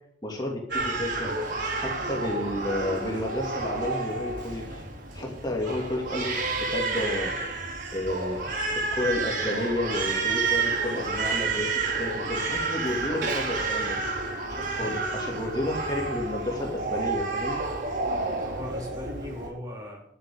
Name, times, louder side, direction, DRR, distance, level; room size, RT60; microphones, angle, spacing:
voice 1, 0.2-1.3 1.7-4.8 5.1-7.5 7.9-8.4 8.7-14.0 14.5-17.6, left 1 dB, 25° left, -1 dB, 2.8 m, -31 dB
Crying sobbing, 0.7-19.5, right 3 dB, 80° right, 4.8 m, -30 dB
voice 2, 14.7-15.2 18.4-20.0, left 1 dB, 20° right, -1 dB, 3.4 m, -39 dB
12.0 x 7.6 x 8.2 m, 0.70 s
head